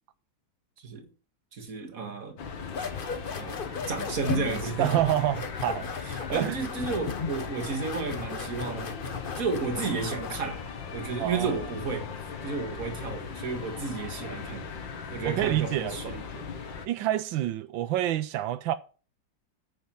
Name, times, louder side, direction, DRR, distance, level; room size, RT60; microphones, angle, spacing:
voice 1, 0.8-1.1 1.5-2.4 3.4-3.6 3.9-4.9 6.0-8.9 9.4-10.6 10.9-12.1 12.4-14.7 15.1-16.2, right 4 dB, 45° right, 2.2 m, -32 dB
sound 1, 2.4-16.9, left 6 dB, 80° left, 2.2 m, -38 dB
sound 2, 2.7-10.5, left 5 dB, 35° left, 1.0 m, -36 dB
voice 2, 4.8-5.9 6.3-6.6 11.2-11.6 15.2-16.4 16.8-18.7, right 13 dB, 90° right, 1.4 m, -28 dB
9.3 x 7.0 x 5.9 m
omnidirectional pair, 2.0 m